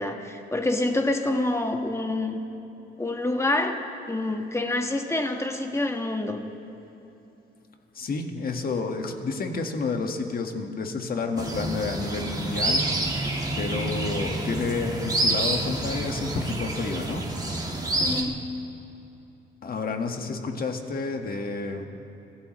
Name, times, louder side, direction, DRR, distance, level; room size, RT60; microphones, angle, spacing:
voice 1, 0.0-2.4 3.0-3.8 4.1-6.4 18.0-18.5, left 2 dB, 15° left, 4 dB, 1.6 m, -27 dB
voice 2, 7.9-12.9 13.6-17.3 19.6-21.9, left 4 dB, 50° left, 4 dB, 1.7 m, -30 dB
sound 1, 11.4-18.2, right 2 dB, 20° right, 1.7 m, -28 dB
27.0 x 16.0 x 3.2 m, 2.9 s
cardioid pair, 90°, 20 cm